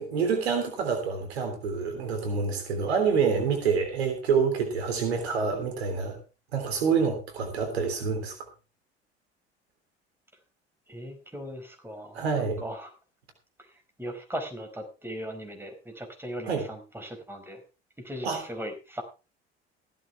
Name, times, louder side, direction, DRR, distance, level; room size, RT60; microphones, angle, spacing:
voice 1, 0.0-6.2 6.5-8.3 12.1-12.6 16.5-16.6 18.2-18.4, right 5 dB, 70° right, 6 dB, 3.4 m, -27 dB
voice 2, 10.9-12.9 13.6-17.6 18.0-19.0, equal, 5° right, 5 dB, 4.8 m, -38 dB
16.0 x 12.5 x 3.5 m, 0.32 s
figure-of-eight pair, 60°, 33 cm